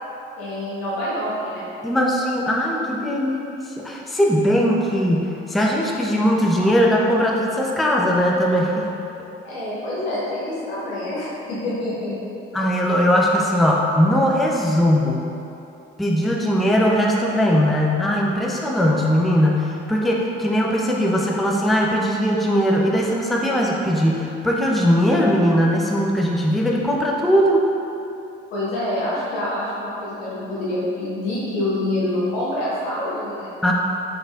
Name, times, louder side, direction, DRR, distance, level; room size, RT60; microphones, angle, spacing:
voice 1, 0.4-1.7 9.4-12.2 28.5-33.5, left 1 dB, 80° left, -8 dB, 1.1 m, -26 dB
voice 2, 1.8-8.9 12.5-15.2 16.0-27.7 33.6-33.7, equal, ahead, -2 dB, 0.4 m, -19 dB
3.9 x 3.9 x 2.3 m, 2.7 s
hypercardioid pair, 50°, 29 cm